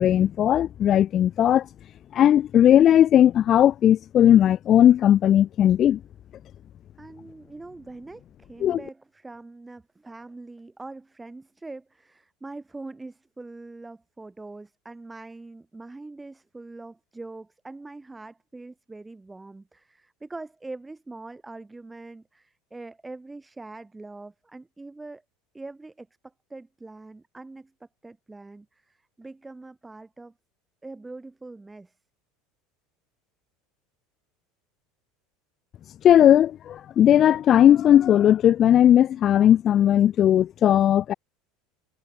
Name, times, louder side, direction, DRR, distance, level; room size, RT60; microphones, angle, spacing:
voice 1, 0.0-1.7 2.1-6.0 8.6-8.8 36.0-41.1, left 10 dB, 45° left, 0.5 m, -17 dB
voice 2, 7.0-25.2 25.5-30.3 30.8-32.0, right 2 dB, 10° right, 5.4 m, -43 dB
supercardioid pair, 105°, 0 cm